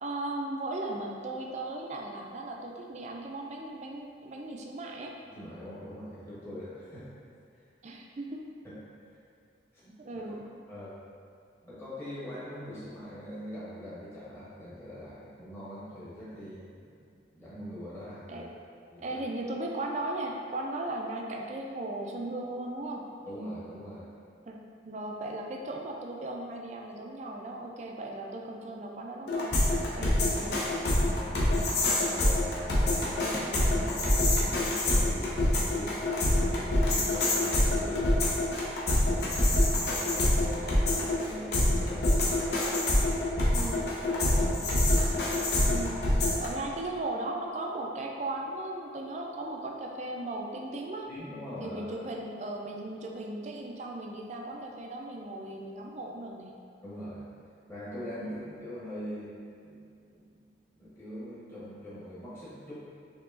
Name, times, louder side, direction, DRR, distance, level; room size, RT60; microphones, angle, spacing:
voice 1, 0.0-5.1 7.8-8.4 10.0-10.4 18.3-18.5 19.0-23.1 24.5-24.6 24.8-30.6 43.4-43.9 45.6-51.1 51.6-56.6 58.2-58.4, right 2 dB, 40° right, 0 dB, 0.3 m, -37 dB
voice 2, 5.2-7.1 7.5-7.6 8.6-8.8 9.0-9.2 9.7-10.3 10.7-11.0 11.6-18.5 18.9-19.2 23.2-24.1 31.1-31.6 31.9-36.0 36.4-38.2 39.0-42.3 44.1-44.6 51.1-51.9 56.8-57.2 57.7-59.3 59.6-60.4 60.7-62.8, equal, 15° left, -11 dB, 1.0 m, -42 dB
sound 1, 29.3-46.5, left 1 dB, 60° left, 0.6 m, -26 dB
4.5 x 2.9 x 2.5 m, 2.3 s
head